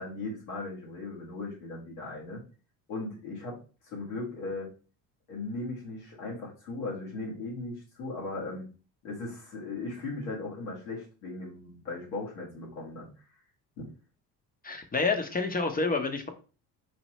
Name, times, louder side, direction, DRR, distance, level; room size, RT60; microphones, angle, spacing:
voice 1, 0.0-2.4 2.9-3.6 3.8-4.7 5.3-8.6 9.0-13.1 13.8-13.9, left 2 dB, 90° left, -3 dB, 1.7 m, -37 dB
voice 2, 14.6-16.3, left 3 dB, 20° left, 6 dB, 0.8 m, -28 dB
4.1 x 2.6 x 3.0 m, 0.36 s
supercardioid pair, 70°, 44 cm